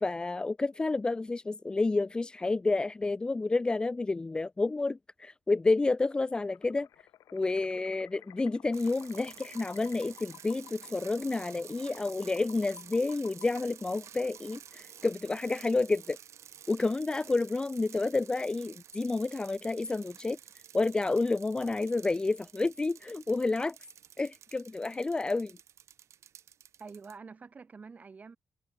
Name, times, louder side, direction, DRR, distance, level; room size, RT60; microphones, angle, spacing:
voice 1, 0.0-6.9 7.3-16.2 16.7-20.4 20.7-23.8 24.2-25.6, left 3 dB, 15° left, 1.2 m, -30 dB
sound 1, 6.5-14.9, left 12 dB, 85° left, 3.9 m, -55 dB
sound 2, 8.7-27.2, right 9 dB, 60° right, 5.7 m, -51 dB
voice 2, 26.8-28.4, right 5 dB, 25° right, 3.5 m, -47 dB
wide cardioid pair, 170°, 6 cm